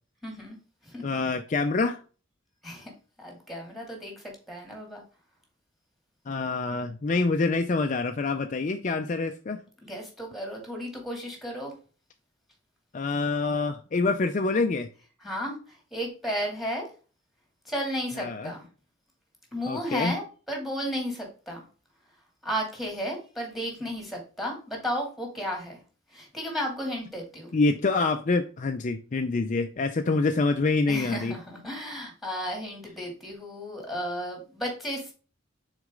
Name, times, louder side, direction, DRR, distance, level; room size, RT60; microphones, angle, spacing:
voice 1, 0.2-0.6 0.8-1.0 2.6-2.9 3.2-5.0 9.8-11.7 15.2-15.6 15.9-16.9 17.7-18.7 19.5-21.6 22.4-25.8 26.1-27.5 30.9-35.1, equal, ahead, 2.5 m, -33 dB
voice 2, 1.0-2.0 6.3-9.6 12.9-14.9 18.2-18.5 19.7-20.2 27.5-31.4, left 3 dB, 40° left, 0.5 m, -26 dB
6.3 x 4.1 x 3.7 m
head